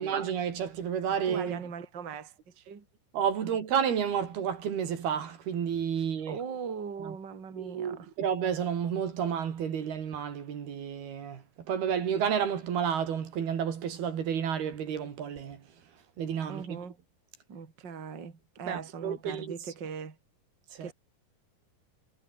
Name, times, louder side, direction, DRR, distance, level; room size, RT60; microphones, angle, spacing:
voice 1, 0.0-1.6 3.1-6.4 7.0-7.1 7.6-15.6 16.2-16.8 18.7-19.5 20.7-20.9, right 8 dB, 70° right, 4.8 m, -31 dB
voice 2, 1.2-2.8 6.0-8.1 16.5-17.0 17.5-20.2 20.8-20.9, right 6 dB, 30° right, 3.2 m, -40 dB
omnidirectional pair, 4.6 m